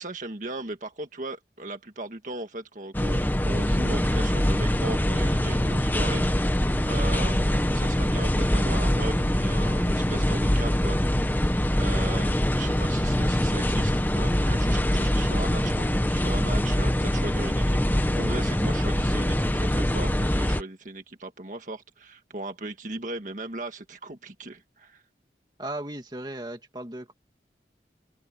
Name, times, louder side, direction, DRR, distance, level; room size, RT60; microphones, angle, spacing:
voice 1, 0.0-6.6 6.9-11.0 11.7-25.0, right 2 dB, 45° right, 1.7 m, -37 dB
sound 1, 2.9-20.6, equal, 10° left, 1.0 m, -24 dB
voice 2, 25.6-27.1, right 1 dB, 25° right, 2.1 m, -36 dB
open air
head